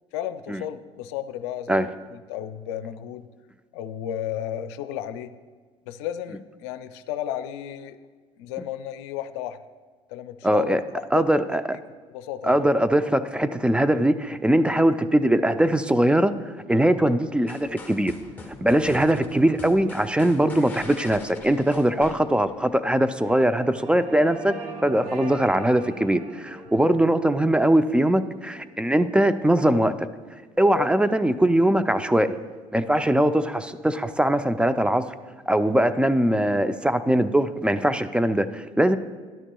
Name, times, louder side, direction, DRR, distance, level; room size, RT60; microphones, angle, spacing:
voice 1, 0.1-3.2 3.7-5.3 5.9-8.0 8.4-9.6 10.1-11.4 11.7-11.8 12.1-12.6 25.0-25.3 26.8-27.0 30.7-30.9, left 11 dB, 90° left, 11 dB, 0.5 m, -33 dB
voice 2, 10.4-10.8 11.1-11.6 12.4-16.3 16.7-18.1 18.6-24.6 24.8-30.0 30.6-32.4 32.7-35.0 35.5-39.0, right 1 dB, 5° right, 12 dB, 0.4 m, -21 dB
sound 1, 17.5-22.7, left 3 dB, 15° left, 1.5 m, -43 dB
sound 2, 19.7-31.5, right 2 dB, 65° right, 1.6 m, -44 dB
12.0 x 9.8 x 2.3 m, 1.4 s
supercardioid pair, 80°, 14 cm